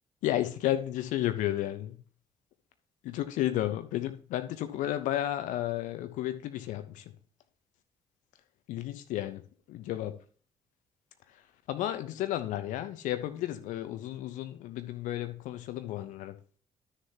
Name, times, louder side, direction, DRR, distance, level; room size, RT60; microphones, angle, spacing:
voice 1, 0.2-2.0 3.0-7.1 8.7-9.4 9.7-10.1 11.7-16.3, left 13 dB, 65° left, 10 dB, 1.1 m, -32 dB
12.5 x 6.8 x 3.0 m, 0.43 s
figure-of-eight pair, 40°, 14 cm